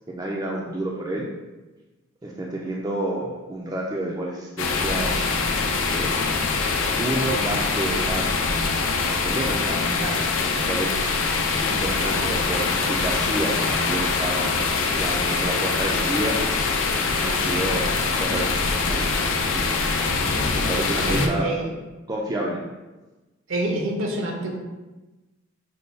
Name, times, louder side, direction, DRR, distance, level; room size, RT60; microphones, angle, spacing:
voice 1, 0.1-1.3 2.2-5.4 5.9-6.1 7.0-10.2 10.5-11.0 11.6-14.5 14.9-16.4 17.2-19.7 20.5-21.6 22.1-22.6, right 1 dB, 15° right, -2 dB, 0.3 m, -30 dB
sound 1, 4.6-21.3, left 4 dB, 70° left, 0.5 m, -24 dB
voice 2, 21.1-21.7 23.5-24.6, right 1 dB, 70° right, 1 dB, 0.7 m, -26 dB
5.3 x 2.2 x 3.3 m, 1.1 s
head